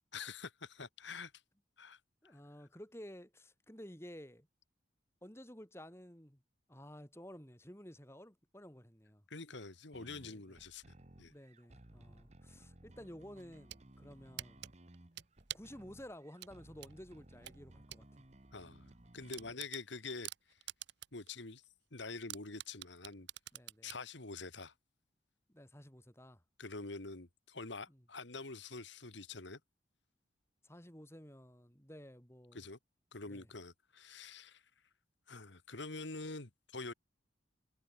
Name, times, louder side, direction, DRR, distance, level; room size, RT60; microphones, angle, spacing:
voice 1, 0.1-1.3 1.8-2.0 2.2-2.4 9.3-11.3 18.5-20.6 21.1-21.6 21.9-23.3 23.8-24.7 26.6-29.6 32.5-32.8 33.1-34.6 35.3-36.9, left 3 dB, 70° left, 2.0 m, -46 dB
voice 2, 2.2-4.5 5.2-6.4 6.7-9.2 10.2-10.4 11.2-14.7 15.5-18.1 23.5-23.9 25.5-26.4 27.9-28.0 30.6-32.6 33.3-33.5, equal, 15° left, 3.6 m, -53 dB
sound 1, 9.9-19.5, right 1 dB, 35° right, 1.5 m, -59 dB
sound 2, 13.4-13.8 14.4-15.8 16.4-18.1 18.4-18.5 18.9-19.0 19.3-21.3 21.6-21.7 22.3-24.0, right 13 dB, 65° right, 0.9 m, -47 dB
head